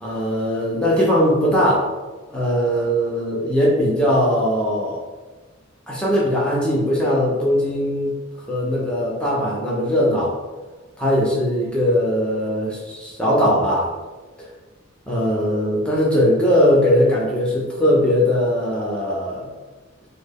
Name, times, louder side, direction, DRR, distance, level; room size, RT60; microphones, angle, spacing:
voice 1, 0.0-1.9 2.3-5.0 5.9-8.1 8.5-10.3 11.0-13.9 15.1-19.5, equal, 5° left, -6 dB, 0.4 m, -20 dB
2.1 x 2.0 x 3.4 m, 1.3 s
head